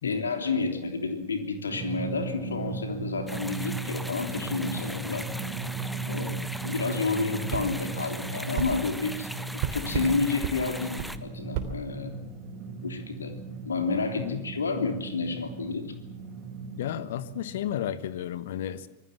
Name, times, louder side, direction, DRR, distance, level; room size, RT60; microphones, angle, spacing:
voice 1, 0.0-5.3 6.1-6.2 6.6-9.3 9.7-12.1 12.8-13.3 13.6-15.9, left 4 dB, 70° left, 6 dB, 3.3 m, -30 dB
Drum, 1.7-17.8, right 4 dB, 25° right, 6.4 m, -37 dB
sound 1, 3.3-11.2, equal, ahead, 1.3 m, -40 dB
voice 2, 6.1-6.5 14.2-14.5 16.8-18.9, left 11 dB, 55° left, 15 dB, 1.3 m, -33 dB
sound 2, 7.5-7.7 8.5-8.7 9.6-10.1 10.4-10.6 11.0-11.1 11.5-11.7, right 9 dB, 45° right, 3.1 m, -31 dB
26.0 x 20.5 x 7.3 m, 0.84 s
figure-of-eight pair, 90°, 0 cm